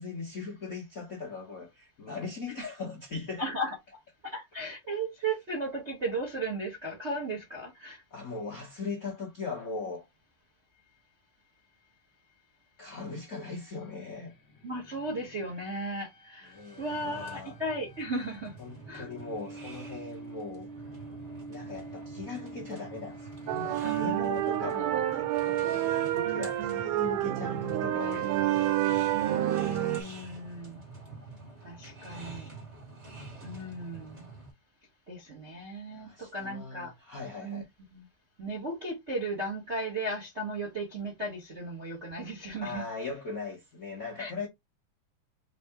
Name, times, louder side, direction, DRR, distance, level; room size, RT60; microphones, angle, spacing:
voice 1, 0.0-3.4 8.1-10.1 12.8-14.3 16.5-17.6 18.6-20.7 21.5-28.3 35.9-37.7 42.6-44.5, left 4 dB, 70° left, 0.8 m, -39 dB
voice 2, 3.4-8.0 14.6-18.6 18.9-19.1 23.8-24.4 26.2-26.8 29.1-30.8 31.6-32.5 33.4-34.3 35.1-36.9 37.4-37.6 37.9-38.1 38.4-42.8 44.2-44.3, right 2 dB, 55° right, 0.7 m, -36 dB
sound 1, 13.2-24.2, right 3 dB, 50° left, 1.0 m, -48 dB
sound 2, 16.4-34.5, right 2 dB, 35° right, 1.1 m, -47 dB
sound 3, 23.5-30.0, right 13 dB, 85° right, 2.2 m, -29 dB
4.9 x 2.8 x 3.5 m
omnidirectional pair, 3.6 m